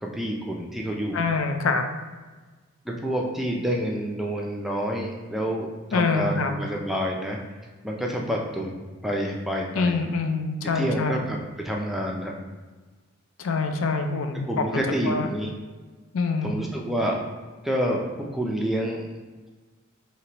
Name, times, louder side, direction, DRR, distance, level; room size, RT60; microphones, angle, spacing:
voice 1, 0.0-1.2 2.9-7.4 7.8-8.7 9.0-10.0 10.7-12.3 14.5-15.5 16.4-17.2 17.6-19.1, equal, ahead, -1 dB, 0.4 m, -28 dB
voice 2, 1.1-1.8 5.9-6.6 9.7-11.3 13.4-14.6 15.0-15.3 16.1-16.5, left 4 dB, 65° left, 6 dB, 0.4 m, -25 dB
4.6 x 2.9 x 2.9 m, 1.3 s
head